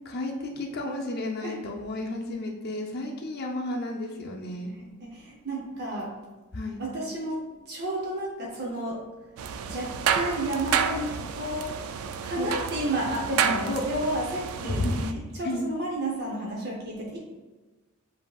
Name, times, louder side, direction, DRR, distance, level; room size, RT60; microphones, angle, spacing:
voice 1, 0.1-4.7 6.5-6.8 12.4-12.5 13.7-13.8 14.6-15.1 15.4-15.6, left 1 dB, 50° left, 1 dB, 0.7 m, -32 dB
voice 2, 4.7-6.1 6.8-9.0 9.6-11.7 12.2-17.2, right 1 dB, 50° right, -3 dB, 0.7 m, -32 dB
sound 1, 9.4-15.1, right 7 dB, 80° right, 0.3 m, -30 dB
7.7 x 2.7 x 2.3 m, 1.2 s
head